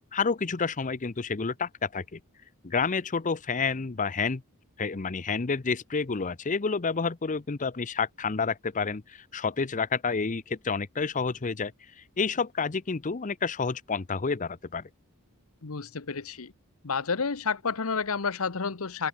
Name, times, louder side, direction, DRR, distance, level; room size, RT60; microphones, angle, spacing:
voice 1, 0.1-2.2 2.6-4.4 4.8-11.7 12.2-14.9, left 5 dB, 35° left, 0.7 m, -29 dB
voice 2, 15.6-16.5 16.8-19.1, left 5 dB, 70° left, 1.0 m, -30 dB
head